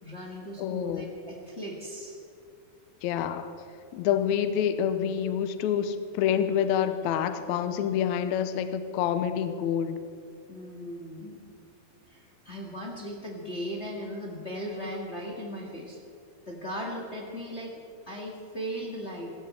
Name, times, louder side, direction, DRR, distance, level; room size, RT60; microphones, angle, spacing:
voice 1, 0.0-2.2 10.5-11.5 12.1-16.0 16.5-19.3, equal, 35° left, -1 dB, 1.1 m, -37 dB
voice 2, 0.6-1.1 3.0-3.5 3.9-10.0, left 9 dB, 75° left, 10 dB, 1.7 m, -27 dB
19.5 x 16.0 x 4.3 m, 2.5 s
omnidirectional pair, 4.2 m